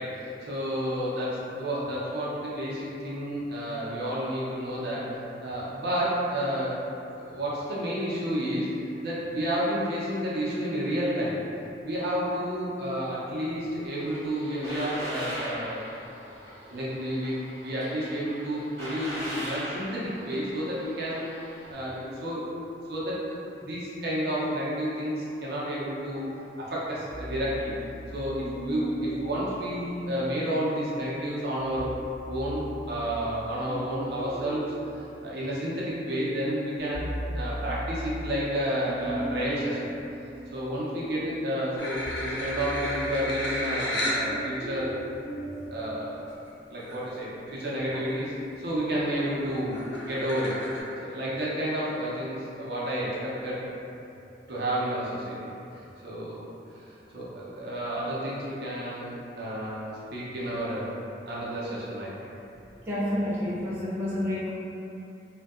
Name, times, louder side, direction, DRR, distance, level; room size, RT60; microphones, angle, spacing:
voice 1, 0.0-6.8 7.1-8.7 9.0-11.4 11.8-15.8 16.7-17.3 17.6-21.2 21.7-22.5 22.9-26.2 26.6-27.7 28.1-31.9 32.3-34.7 35.2-39.9 40.5-44.9 45.7-46.3 46.7-50.6 51.0-53.6 54.5-55.5 56.0-56.4 56.8-60.9 61.3-62.3, equal, 65° right, -7 dB, 0.6 m, -31 dB
sound 1, 13.9-21.7, equal, 15° left, 1.3 m, -40 dB
sound 2, 27.1-30.6 31.6-36.0 36.4-45.7, right 1 dB, 30° left, 1.0 m, -38 dB
sound 3, 41.8-44.3 45.0-45.1 46.5-46.6 46.8-47.2 47.6-48.1 48.5-50.8, equal, 80° left, 0.5 m, -33 dB
voice 2, 62.9-64.5, left 1 dB, 15° right, -10 dB, 0.4 m, -29 dB
2.6 x 2.2 x 2.3 m, 2.8 s
head